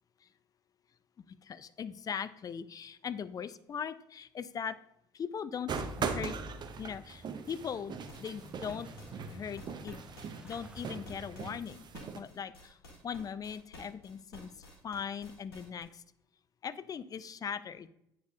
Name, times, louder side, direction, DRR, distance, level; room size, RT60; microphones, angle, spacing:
voice 1, 1.4-4.8 5.1-6.3 6.8-8.9 9.3-10.0 10.4-11.9 12.1-16.0 16.6-17.9, left 7 dB, 30° left, 14 dB, 0.4 m, -40 dB
sound 1, 5.7-12.2, right 5 dB, 35° right, 0.7 m, -40 dB
Motorcycle / Engine starting, 6.3-11.9, right 1 dB, 5° right, 0.7 m, -53 dB
sound 2, 8.1-15.8, left 1 dB, 80° left, 1.7 m, -52 dB
9.1 x 4.3 x 2.7 m, 0.76 s
figure-of-eight pair, 60°, 13 cm